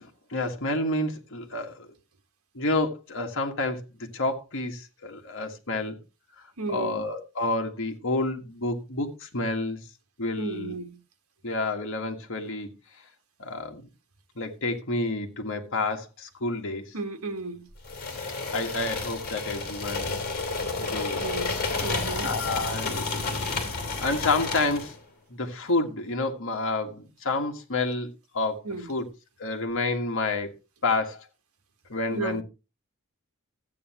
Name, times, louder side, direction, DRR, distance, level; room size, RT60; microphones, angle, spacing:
voice 1, 0.0-1.9 2.5-3.8 4.1-6.0 6.7-9.8 10.2-10.7 11.4-12.7 13.4-13.9 14.3-16.8 18.5-20.1 20.8-21.2 22.2-23.2 24.0-24.9 25.3-28.1 28.3-28.6 28.9-29.0 29.4-30.5 30.8-31.3 31.9-32.4, left 2 dB, 65° left, 1.8 m, -29 dB
voice 2, 6.6-7.0 10.4-10.9 16.9-17.6 21.2-21.6 21.8-22.3 28.6-28.9 32.1-32.4, right 3 dB, 90° right, 1.5 m, -34 dB
sound 1, 17.8-25.0, left 3 dB, 50° left, 3.1 m, -31 dB
14.0 x 8.7 x 3.0 m
head